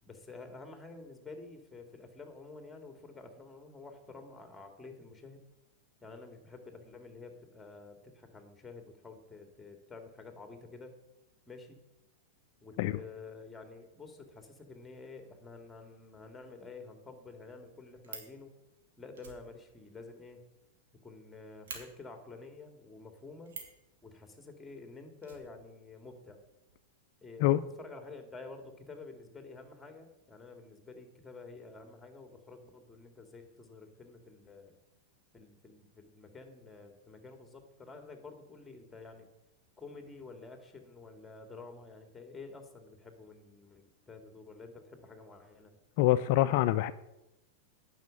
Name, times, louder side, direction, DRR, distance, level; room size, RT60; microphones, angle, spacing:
voice 1, 0.0-5.4 6.0-10.9 11.5-11.8 12.6-18.5 19.0-20.4 21.0-23.5 24.0-26.4 27.2-34.8 35.3-39.3 39.8-45.8, left 3 dB, 10° left, 6 dB, 2.4 m, -50 dB
Fire, 17.6-18.4 19.1-20.9 21.2-21.3 21.7-21.8 23.5-23.8 25.2-26.1 26.4-26.5 26.7-26.8, right 5 dB, 75° right, 2.8 m, -47 dB
voice 2, 46.0-46.9, left 15 dB, 55° left, 12 dB, 0.4 m, -25 dB
9.4 x 6.5 x 8.6 m, 0.95 s
hypercardioid pair, 105°, 0 cm